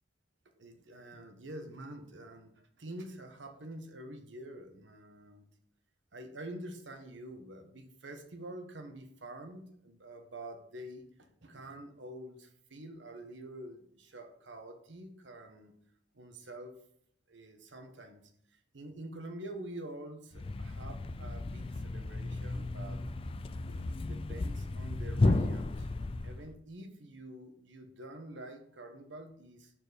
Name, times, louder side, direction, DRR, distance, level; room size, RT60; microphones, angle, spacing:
voice 1, 0.6-5.4 6.1-11.1 11.4-15.7 16.1-16.7 17.3-18.3 18.7-23.0 23.6-25.9 26.2-29.7, right 1 dB, 80° right, 6 dB, 1.2 m, -47 dB
Thump thud, 20.3-26.5, left 2 dB, 30° left, 0.3 m, -33 dB
6.8 x 4.5 x 5.1 m, 0.68 s
head